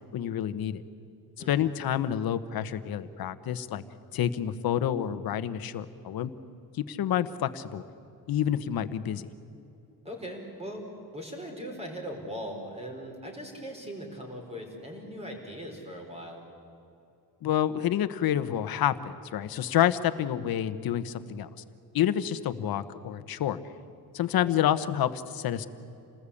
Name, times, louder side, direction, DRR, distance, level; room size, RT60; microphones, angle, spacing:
voice 1, 0.1-0.8 1.5-3.8 4.1-6.3 6.7-7.8 8.3-9.3 17.4-21.5 21.9-23.6 24.1-25.7, left 10 dB, 65° left, 12 dB, 1.2 m, -28 dB
voice 2, 1.4-1.7 10.0-10.9 11.1-16.4 24.4-24.6, equal, 15° right, 2 dB, 4.7 m, -40 dB
28.0 x 19.5 x 8.5 m, 2.8 s
cardioid pair, 160°, 38 cm